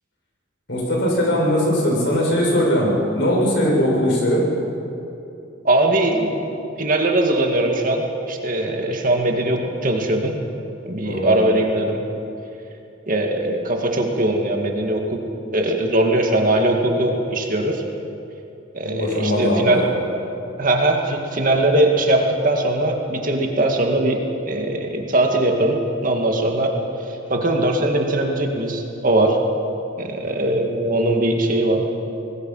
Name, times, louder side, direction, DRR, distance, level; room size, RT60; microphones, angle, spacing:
voice 1, 0.7-4.4 11.0-11.5 18.8-19.9, equal, 65° left, -2 dB, 6.5 m, -20 dB
voice 2, 5.6-6.5 6.8-10.4 10.9-12.0 13.1-15.2 15.5-17.8 18.7-19.8 20.6-24.2 24.5-26.7 27.3-29.4 30.0-31.8, right 1 dB, 45° right, 2 dB, 2.1 m, -20 dB
24.5 x 19.5 x 5.7 m, 2.8 s
head